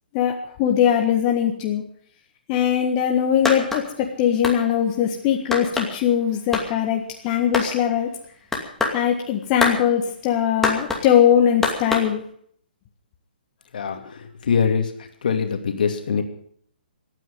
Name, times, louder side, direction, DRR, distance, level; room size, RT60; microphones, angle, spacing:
voice 1, 0.1-1.8 2.5-8.1 8.9-12.2, left 9 dB, 30° left, 1 dB, 1.6 m, -21 dB
sound 1, 3.4-3.8 4.4-4.6 5.5-5.9 6.5-6.7 7.5-7.7 8.5-9.0 9.6-9.8 10.6-11.0 11.6-12.1, left 3 dB, 5° left, 2.5 m, -23 dB
voice 2, 13.7-14.9 15.2-16.2, left 6 dB, 60° left, 5 dB, 2.6 m, -23 dB
24.5 x 9.3 x 5.4 m, 0.63 s
figure-of-eight pair, 130°, 5 cm